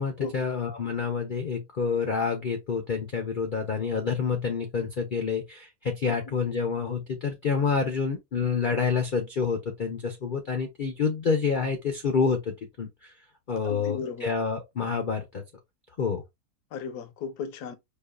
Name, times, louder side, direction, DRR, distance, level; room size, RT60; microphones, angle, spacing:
voice 1, 0.0-13.1 13.5-15.4 16.0-16.2, left 5 dB, 65° left, 0.5 m, -28 dB
voice 2, 13.6-14.3 16.7-17.7, left 6 dB, 80° left, 1.2 m, -35 dB
5.2 x 2.4 x 2.3 m
omnidirectional pair, 1.7 m